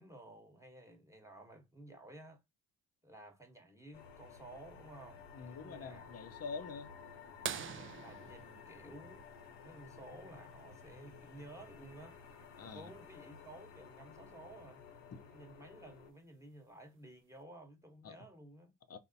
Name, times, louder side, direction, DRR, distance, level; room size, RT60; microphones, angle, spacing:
voice 1, 0.0-2.4 3.0-6.1 7.9-9.3 9.6-12.2 12.6-14.8 15.3-18.7, right 1 dB, 5° right, 1.1 m, -54 dB
sound 1, 3.9-16.1, left 6 dB, 70° left, 0.9 m, -54 dB
voice 2, 5.4-6.9 12.6-12.9 18.0-18.2 18.9-19.0, left 5 dB, 35° left, 0.6 m, -45 dB
sound 2, 7.4-9.9 11.8-11.9 14.2-14.3 16.0-16.2 17.0-17.1, right 8 dB, 30° right, 0.4 m, -44 dB
3.9 x 2.1 x 2.6 m
hypercardioid pair, 60°, 46 cm